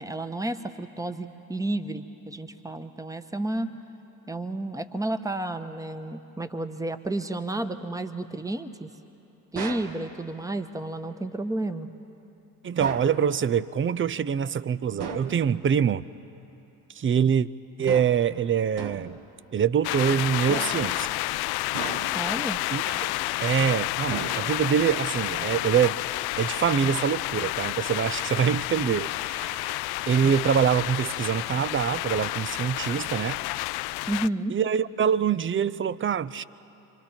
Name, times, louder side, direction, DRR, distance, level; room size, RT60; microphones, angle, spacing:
voice 1, 0.0-3.7 4.3-8.9 9.5-11.9 22.1-22.6 34.1-34.5, right 2 dB, 5° right, 9 dB, 1.2 m, -31 dB
sound 1, 9.5-10.0 12.8-13.2 15.0-15.4 17.9-18.3 18.8-19.2 20.5-21.0 21.7-22.3 24.1-24.8, right 5 dB, 55° right, 1.8 m, -36 dB
voice 2, 12.6-16.0 16.9-17.5 17.8-19.2 19.5-21.1 22.7-23.1 23.4-26.0 26.4-33.4 34.5-36.4, right 8 dB, 25° right, 18 dB, 0.6 m, -25 dB
sound 2, 19.8-34.3, left 18 dB, 55° left, 0.5 m, -30 dB
28.5 x 25.0 x 4.4 m, 2.9 s
hypercardioid pair, 50°, 47 cm